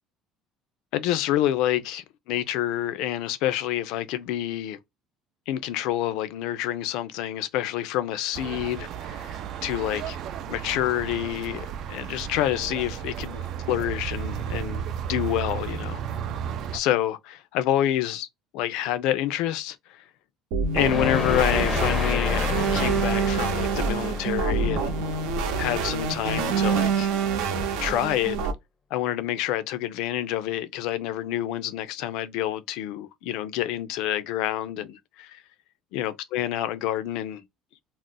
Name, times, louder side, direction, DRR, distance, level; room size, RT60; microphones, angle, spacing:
voice 1, 0.9-4.8 5.5-10.2 10.5-16.0 16.7-18.3 18.5-20.0 20.7-24.9 25.6-27.1 27.8-28.4 28.9-35.4 35.9-37.4, left 12 dB, 75° left, 0.4 m, -28 dB
sound 1, 8.3-16.8, right 8 dB, 50° right, 0.3 m, -33 dB
sound 2, 20.5-28.5, right 5 dB, 80° right, 0.7 m, -26 dB
sound 3, 20.7-25.8, left 4 dB, 15° left, 0.5 m, -29 dB
2.4 x 2.1 x 3.7 m
cardioid pair, 160°, 0 cm